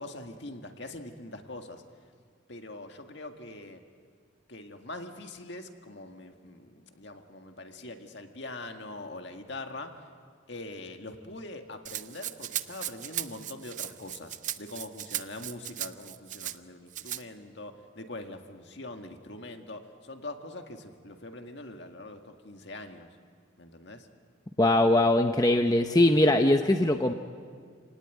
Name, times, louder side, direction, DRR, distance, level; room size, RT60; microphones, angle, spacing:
voice 1, 0.0-1.8 2.5-3.8 4.5-10.1 10.5-23.1 23.6-24.1, left 2 dB, 55° left, 5 dB, 1.9 m, -43 dB
Rattle (instrument), 11.9-16.6 16.9-17.2, right 12 dB, 40° right, 0.6 m, -37 dB
voice 2, 24.6-27.1, left 1 dB, 20° left, 6 dB, 0.7 m, -21 dB
28.5 x 18.5 x 9.4 m, 2.1 s
head